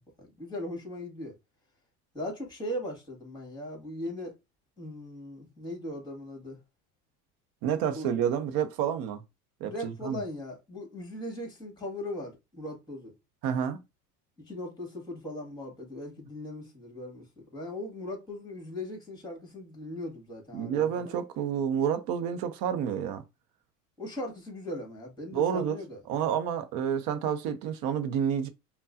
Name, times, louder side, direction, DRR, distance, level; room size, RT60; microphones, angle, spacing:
voice 1, 0.2-1.4 2.1-4.3 4.8-6.6 7.9-8.1 9.6-13.1 14.5-21.2 24.0-26.0, left 1 dB, 10° left, 1.9 m, -39 dB
voice 2, 7.6-9.2 9.6-10.2 13.4-13.8 20.5-23.2 25.3-25.8 26.1-28.5, right 8 dB, 50° right, 0.7 m, -29 dB
5.3 x 2.3 x 2.6 m
hypercardioid pair, 80°, 47 cm